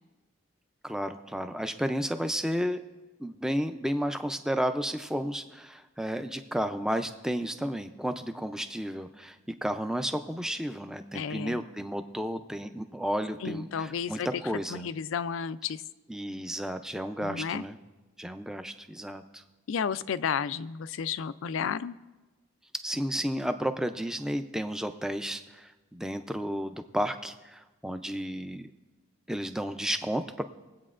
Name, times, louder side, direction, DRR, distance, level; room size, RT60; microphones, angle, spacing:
voice 1, 0.8-2.8 3.2-14.9 16.1-17.8 18.2-19.4 22.8-28.7 29.3-30.4, equal, 5° right, 8 dB, 0.4 m, -32 dB
voice 2, 11.1-11.6 13.4-14.3 14.7-15.8 17.2-17.6 19.7-22.0, left 7 dB, 75° left, 16 dB, 0.4 m, -32 dB
22.0 x 8.4 x 2.5 m, 1.2 s
head